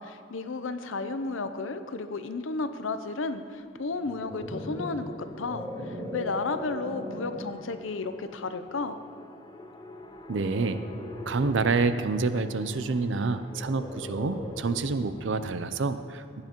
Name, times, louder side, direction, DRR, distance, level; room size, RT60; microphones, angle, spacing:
voice 1, 0.0-9.0, left 3 dB, 70° left, 9 dB, 0.6 m, -33 dB
sound 1, 3.9-7.6 8.2-8.5 10.3-11.8 13.5-14.9, equal, 10° right, 2.3 m, -39 dB
sound 2, 4.0-15.7, left 1 dB, 20° left, 0.6 m, -48 dB
voice 2, 10.3-10.8 11.3-16.4, right 3 dB, 65° right, 11 dB, 0.5 m, -28 dB
15.5 x 9.5 x 3.0 m, 2.6 s
head